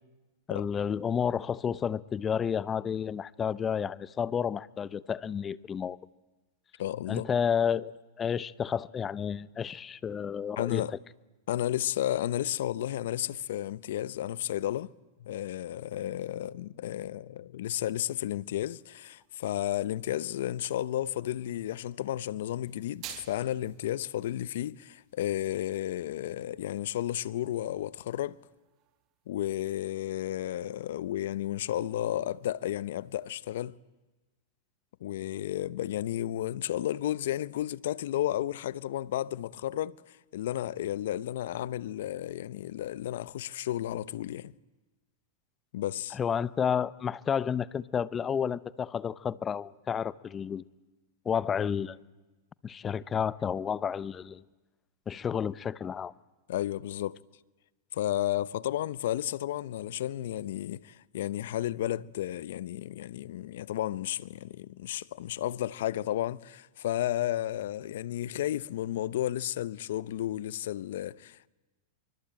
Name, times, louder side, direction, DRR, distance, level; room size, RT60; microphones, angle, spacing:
voice 1, 0.5-6.0 7.1-10.8 46.1-50.6 51.2-52.0 52.6-54.4 55.1-56.1, left 7 dB, 20° left, 0.8 m, -31 dB
voice 2, 6.8-7.3 10.6-10.9 11.5-14.9 15.2-28.4 29.3-33.7 35.0-44.5 45.7-46.2 56.5-57.2 57.9-71.5, left 12 dB, 70° left, 0.8 m, -33 dB
sound 1, 18.4-33.4, right 16 dB, 45° right, 1.4 m, -56 dB
24.0 x 23.5 x 8.9 m
hypercardioid pair, 125°, 0 cm